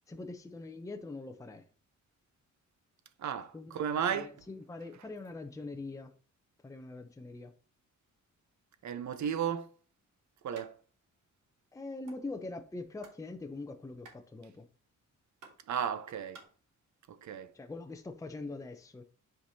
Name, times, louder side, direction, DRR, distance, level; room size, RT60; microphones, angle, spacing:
voice 1, 0.1-1.6 3.5-6.1 6.6-7.5 11.7-14.7 17.5-19.0, left 3 dB, 10° left, 0.6 m, -43 dB
voice 2, 3.2-4.3 8.8-9.7 10.4-10.7 15.7-16.4 17.2-17.5, right 8 dB, 65° right, 0.7 m, -34 dB
sound 1, 10.5-10.7 11.0-11.1 11.4-12.2 12.7-13.2 13.5-16.4, right 4 dB, 90° right, 3.1 m, -55 dB
9.1 x 5.0 x 2.8 m
wide cardioid pair, 130°, 31 cm